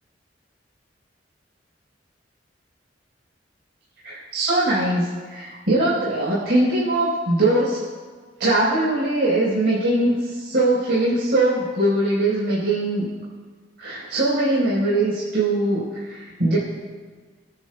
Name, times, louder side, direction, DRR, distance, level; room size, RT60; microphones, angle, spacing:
voice 1, 4.0-7.8 8.4-13.1 13.8-16.6, right 1 dB, 75° right, -8 dB, 3.9 m, -21 dB
24.0 x 9.8 x 2.2 m, 1.5 s
head